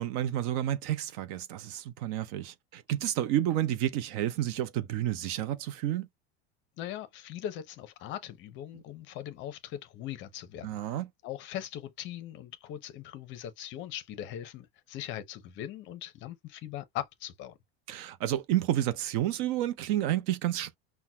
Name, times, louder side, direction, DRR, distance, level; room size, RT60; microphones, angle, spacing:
voice 1, 0.0-6.1 10.6-11.1 17.9-20.8, right 12 dB, 55° right, 0.6 m, -30 dB
voice 2, 6.8-17.6, left 11 dB, 40° left, 0.7 m, -40 dB
5.7 x 2.2 x 2.2 m
supercardioid pair, 145°, 30 cm